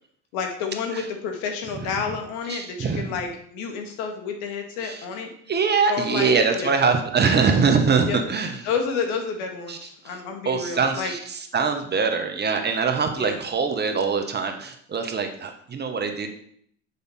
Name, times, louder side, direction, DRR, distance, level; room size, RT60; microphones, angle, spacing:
voice 1, 0.3-5.3 5.9-6.7 8.1-8.2 8.6-11.1 13.2-13.4, left 5 dB, 70° left, 4 dB, 1.7 m, -30 dB
voice 2, 2.5-3.1 4.8-5.0 5.5-8.6 9.7-16.3, right 5 dB, 25° right, 6 dB, 1.1 m, -23 dB
6.8 x 5.1 x 4.2 m, 0.66 s
hypercardioid pair, 85°, 37 cm